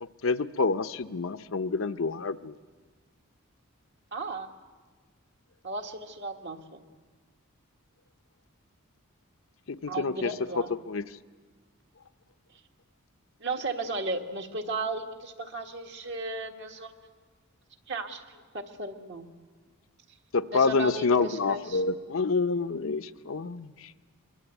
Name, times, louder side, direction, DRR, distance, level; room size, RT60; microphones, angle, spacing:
voice 1, 0.0-2.5 9.7-10.3 10.9-11.0 20.3-23.9, left 4 dB, 65° left, 10 dB, 0.7 m, -28 dB
voice 2, 4.1-4.5 5.6-6.8 9.9-10.7 13.4-16.9 17.9-19.3 20.5-21.8, right 2 dB, 55° right, 4 dB, 1.7 m, -35 dB
23.0 x 23.0 x 8.1 m, 1.5 s
head